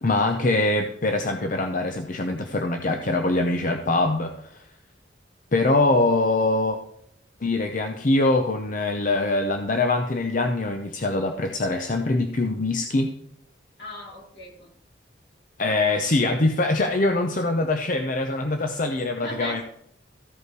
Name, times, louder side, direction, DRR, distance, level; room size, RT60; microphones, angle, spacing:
voice 1, 0.0-4.6 5.5-6.8 7.4-13.1 15.6-19.6, left 2 dB, 45° left, 5 dB, 0.7 m, -23 dB
voice 2, 13.8-14.7 18.9-19.6, left 1 dB, 75° left, -2 dB, 3.9 m, -37 dB
14.5 x 5.4 x 4.7 m, 0.70 s
head